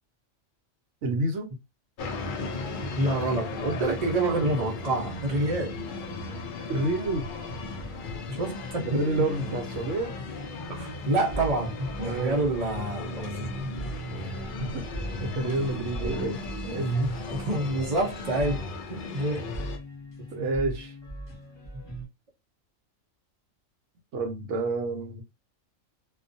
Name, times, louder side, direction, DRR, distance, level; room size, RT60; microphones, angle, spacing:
voice 1, 1.0-1.5 6.1-6.2 6.7-7.3 8.8-10.1 12.0-12.4 14.2-14.8 15.2-16.4 16.6-17.0 20.3-20.9 24.1-25.2, right 2 dB, 70° right, 0.9 m, -29 dB
sound 1, 2.0-19.8, left 2 dB, 65° left, 0.5 m, -36 dB
voice 2, 3.0-5.8 8.3-9.0 10.7-13.7 16.8-18.6 18.9-19.5, right 2 dB, 45° right, 0.5 m, -28 dB
sound 2, 7.5-22.1, right 1 dB, 20° left, 1.0 m, -41 dB
2.4 x 2.1 x 2.5 m
omnidirectional pair, 1.3 m